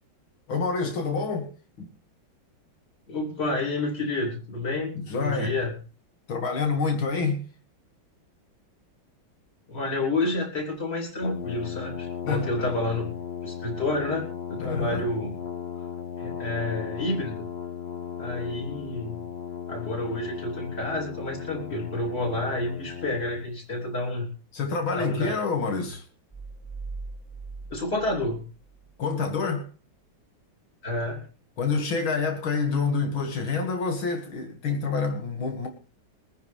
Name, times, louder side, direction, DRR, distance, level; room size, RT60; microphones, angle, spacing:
voice 1, 0.5-1.5 1.8-1.9 4.9-5.5 6.3-7.5 12.3-12.7 14.6-15.1 24.5-26.1 29.0-29.7 31.6-35.7, left 4 dB, 85° left, 2.9 m, -27 dB
voice 2, 3.1-5.7 9.7-13.1 13.4-15.3 16.2-17.5 18.2-19.2 19.7-24.3 25.0-25.4 27.7-28.4 30.8-31.2, left 2 dB, 30° left, 3.8 m, -29 dB
Brass instrument, 11.2-23.5, left 8 dB, 45° left, 0.8 m, -36 dB
sound 1, 26.3-29.1, right 3 dB, 5° left, 0.7 m, -40 dB
23.5 x 9.7 x 3.5 m
omnidirectional pair, 2.2 m